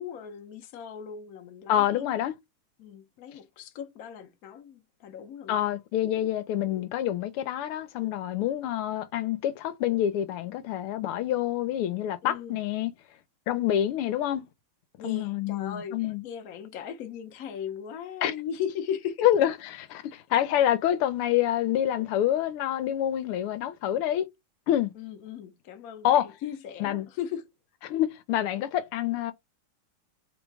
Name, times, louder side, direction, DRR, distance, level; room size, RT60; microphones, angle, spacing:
voice 1, 0.0-2.1 2.8-5.8 12.2-12.6 15.0-19.3 24.9-27.4, left 8 dB, 55° left, 1.1 m, -38 dB
voice 2, 1.7-2.3 5.5-12.9 13.5-14.5 15.0-16.3 18.2-18.3 19.2-24.3 24.7-24.9 26.0-26.3 26.8-27.1 27.8-29.3, left 11 dB, 85° left, 1.7 m, -27 dB
3.8 x 3.1 x 4.7 m
omnidirectional pair, 2.4 m